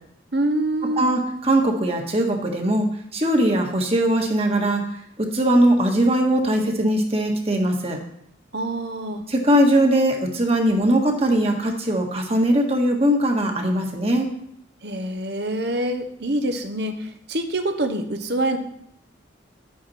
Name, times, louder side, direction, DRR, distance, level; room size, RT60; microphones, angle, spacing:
voice 1, 0.3-1.0 8.5-9.2 14.8-18.6, right 1 dB, 60° right, 7 dB, 1.1 m, -25 dB
voice 2, 1.0-2.9 3.1-4.8 5.2-8.0 9.3-14.3, right 1 dB, 30° right, 2 dB, 1.6 m, -20 dB
11.5 x 8.6 x 4.3 m, 0.72 s
head